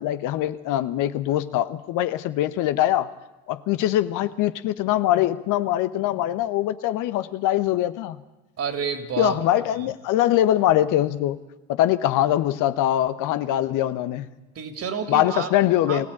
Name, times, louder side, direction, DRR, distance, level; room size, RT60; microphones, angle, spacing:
voice 1, 0.0-3.1 3.5-8.2 9.2-11.4 11.7-14.3 15.1-16.1, left 13 dB, 55° left, 12 dB, 1.1 m, -22 dB
voice 2, 8.6-9.6 14.5-15.5 15.9-16.1, right 6 dB, 40° right, 7 dB, 3.2 m, -29 dB
23.5 x 17.0 x 8.8 m, 1.0 s
hypercardioid pair, 70°, 36 cm